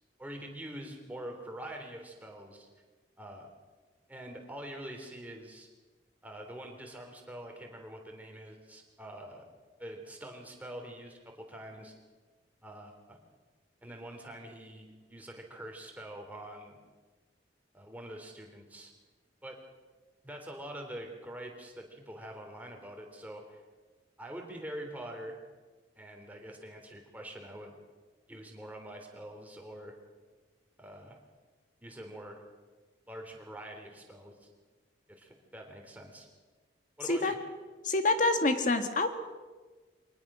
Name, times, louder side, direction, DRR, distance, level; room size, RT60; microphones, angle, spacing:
voice 1, 0.2-2.7 3.2-3.5 4.1-5.7 6.2-9.4 9.8-11.9 12.6-13.2 13.8-16.8 17.7-18.9 19.4-19.6 20.2-23.6 24.2-25.4 26.0-27.7 28.3-30.0 30.8-31.2 31.8-32.4 33.1-34.3 35.1-36.3 37.0-37.4, right 1 dB, 10° right, 2 dB, 3.5 m, -45 dB
voice 2, 37.8-39.1, left 2 dB, 45° left, 7 dB, 1.8 m, -26 dB
24.0 x 19.0 x 6.3 m, 1.3 s
head